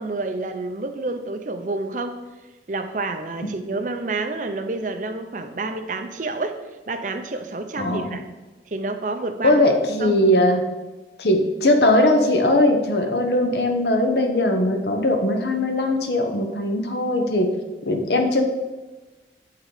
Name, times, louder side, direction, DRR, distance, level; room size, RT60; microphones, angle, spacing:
voice 1, 0.0-2.2 2.7-6.6 6.9-8.2 8.7-9.7 10.0-10.2, right 3 dB, 45° right, 7 dB, 0.5 m, -29 dB
voice 2, 7.8-8.2 9.4-10.6 11.2-17.5 17.8-18.4, left 1 dB, 70° left, 4 dB, 0.9 m, -20 dB
8.4 x 3.8 x 4.9 m, 1.2 s
head